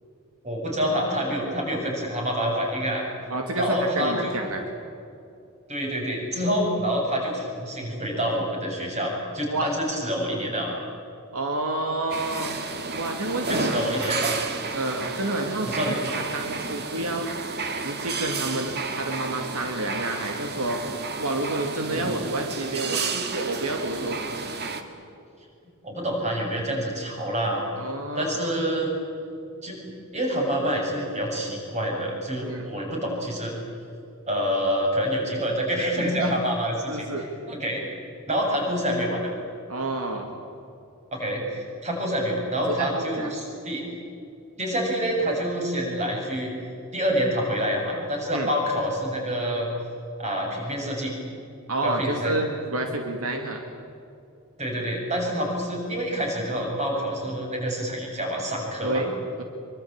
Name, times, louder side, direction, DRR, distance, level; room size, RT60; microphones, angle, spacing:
voice 1, 0.4-3.0 3.6-4.4 5.7-10.8 13.5-14.4 15.6-16.0 21.9-22.1 25.8-27.6 28.2-28.9 29.6-29.8 30.1-33.5 34.3-37.8 38.3-39.3 41.1-43.8 44.6-46.5 46.9-49.7 50.2-51.1 51.8-52.3 54.6-59.0, equal, 30° right, 0 dB, 7.5 m, -27 dB
voice 2, 3.3-4.6 9.5-9.7 11.3-12.6 12.9-13.8 14.7-17.3 17.8-20.8 21.2-24.2 27.8-28.5 32.4-32.7 36.2-36.3 36.9-37.3 39.7-40.3 42.7-43.3 48.3-48.5 51.7-53.6 58.8-59.1, right 2 dB, 75° right, 3 dB, 2.5 m, -29 dB
sound 1, 12.1-24.8, right 4 dB, 50° right, 2.1 m, -31 dB
25.0 x 24.0 x 8.9 m, 2.6 s
head